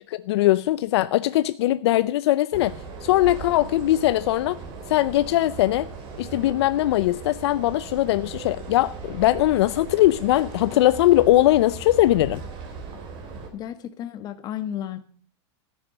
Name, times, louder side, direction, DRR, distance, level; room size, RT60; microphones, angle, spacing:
voice 1, 0.1-2.7 3.0-4.6 4.9-5.9 6.2-12.4, left 15 dB, 65° left, 0.6 m, -20 dB
sound 1, 2.5-13.5, right 4 dB, 35° right, 3.3 m, -38 dB
voice 2, 13.5-15.0, left 10 dB, 25° left, 1.4 m, -33 dB
13.5 x 9.8 x 6.7 m
supercardioid pair, 155°, 15 cm